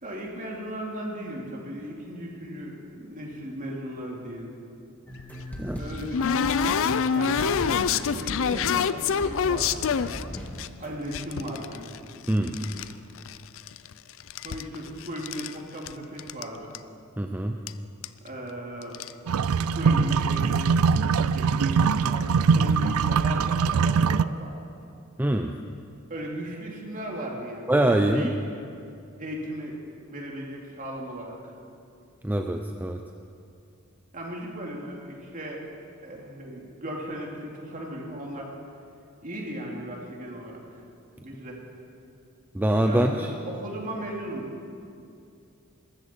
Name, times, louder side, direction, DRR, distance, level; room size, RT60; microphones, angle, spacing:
voice 1, 0.0-4.5 5.7-6.8 7.1-10.2 10.8-11.8 12.6-12.9 14.4-16.7 18.2-19.0 19.4-20.8 21.3-24.7 26.1-28.6 29.2-29.8 30.0-31.3 34.1-35.6 36.0-38.5 39.2-40.8 41.2-41.6 42.8-44.5, equal, 40° right, -1 dB, 2.7 m, -37 dB
sound 1, 5.1-10.9, equal, 5° left, 1.9 m, -39 dB
sound 2, 5.2-10.7 11.1-12.9 13.2-13.9 14.2-15.5 15.9-16.0 16.2-16.4 16.7-16.8 17.7-17.8 18.0-18.3 18.8-19.1, left 6 dB, 65° left, 0.5 m, -26 dB
voice 2, 12.3-12.6 17.2-17.6 25.2-25.5 27.7-28.3 32.2-33.0 42.5-43.3, right 1 dB, 10° right, 4 dB, 0.5 m, -24 dB
sound 3, 19.3-24.3, right 5 dB, 75° right, 0.4 m, -22 dB
21.5 x 13.5 x 4.5 m, 2.5 s
head